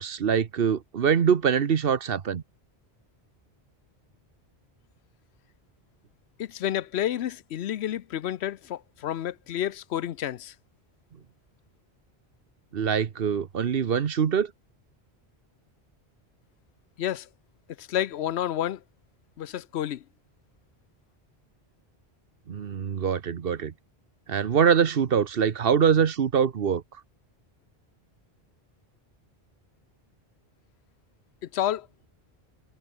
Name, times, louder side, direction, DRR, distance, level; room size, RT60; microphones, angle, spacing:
voice 1, 0.0-2.4 12.7-14.5 22.5-23.7 24.3-26.8, right 7 dB, 65° right, 1.1 m, -24 dB
voice 2, 6.4-10.5 17.0-17.3 17.8-18.8 19.4-20.0 31.5-31.9, left 11 dB, 85° left, 0.9 m, -30 dB
omnidirectional pair, 1.1 m